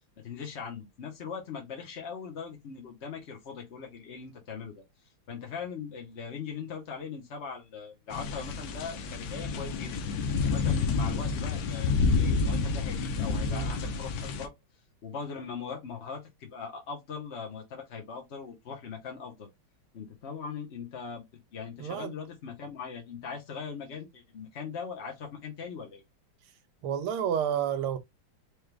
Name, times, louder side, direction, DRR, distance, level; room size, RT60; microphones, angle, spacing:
voice 1, 0.2-10.0 10.4-14.5 15.0-19.5 19.9-26.0, left 6 dB, 55° left, 0.7 m, -40 dB
sound 1, 8.1-14.5, left 4 dB, 75° left, 1.3 m, -29 dB
voice 2, 13.5-13.8 21.8-22.1 26.8-28.0, right 9 dB, 85° right, 1.6 m, -30 dB
4.9 x 2.3 x 3.2 m
omnidirectional pair, 2.3 m